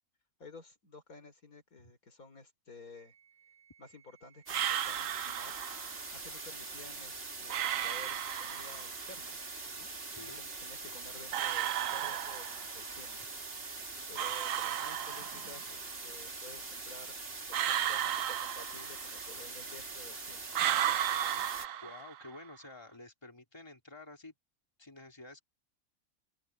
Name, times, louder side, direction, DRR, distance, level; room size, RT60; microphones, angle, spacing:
voice 1, 0.4-3.1 3.8-5.5 6.1-9.4 9.7-9.9 10.3-13.2 14.1-17.1 17.5-20.5 21.3-21.4, left 3 dB, 75° left, 4.2 m, -53 dB
Wind instrument woodwind instrument, 2.9-6.6, right 8 dB, 90° right, 8.5 m, -66 dB
sound 1, 4.5-21.7, right 3 dB, 40° right, 2.2 m, -43 dB
sound 2, 4.5-6.0 7.5-9.0 11.3-12.9 14.2-15.7 17.5-19.3 20.5-22.4, right 11 dB, 70° right, 1.0 m, -34 dB
voice 2, 10.1-10.4 21.8-24.3 24.8-25.4, left 2 dB, 15° left, 3.2 m, -50 dB
open air
omnidirectional pair, 1.5 m